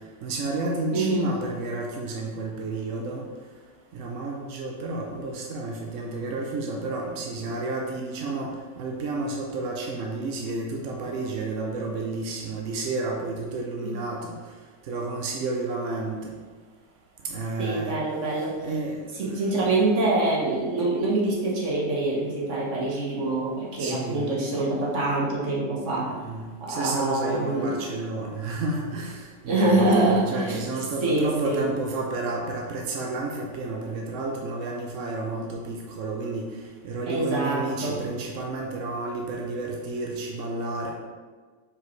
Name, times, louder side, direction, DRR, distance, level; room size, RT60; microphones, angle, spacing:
voice 1, 0.2-3.2 3.9-14.3 14.9-16.3 17.3-18.0 18.6-19.3 23.8-24.3 26.0-36.4 36.8-40.9, right 3 dB, 65° right, 0 dB, 0.7 m, -31 dB
voice 2, 0.9-1.3 13.8-13.9 17.6-18.6 19.2-26.1 26.6-27.8 29.5-30.6 31.0-31.7 37.1-38.0, right 2 dB, 45° right, -4 dB, 1.4 m, -25 dB
6.4 x 4.7 x 3.2 m, 1.4 s
omnidirectional pair, 2.0 m